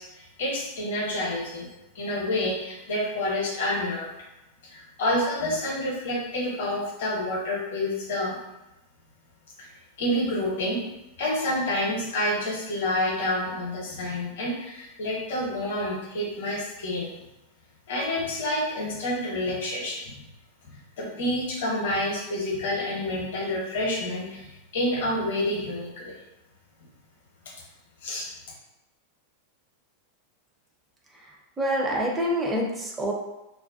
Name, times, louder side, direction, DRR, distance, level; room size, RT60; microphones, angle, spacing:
voice 1, 0.0-1.7 1.9-4.1 4.6-8.4 9.6-9.7 10.0-10.8 11.2-17.2 17.9-20.2 21.0-26.1 28.0-28.3, left 1 dB, 55° left, -2 dB, 0.7 m, -28 dB
voice 2, 31.6-33.1, equal, 15° right, -1 dB, 0.5 m, -26 dB
2.3 x 2.1 x 2.5 m, 0.95 s
figure-of-eight pair, 90°, 0 cm